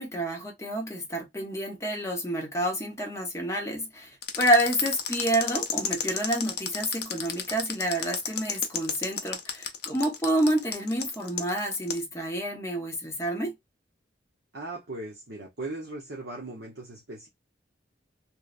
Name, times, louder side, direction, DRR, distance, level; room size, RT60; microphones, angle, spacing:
voice 1, 0.0-4.1 4.4-13.5, right 1 dB, 15° left, 0.7 m, -28 dB
sound 1, 4.2-12.0, left 8 dB, 55° left, 0.5 m, -32 dB
voice 2, 14.5-17.3, right 2 dB, 65° right, 0.8 m, -38 dB
3.0 x 2.0 x 2.4 m
head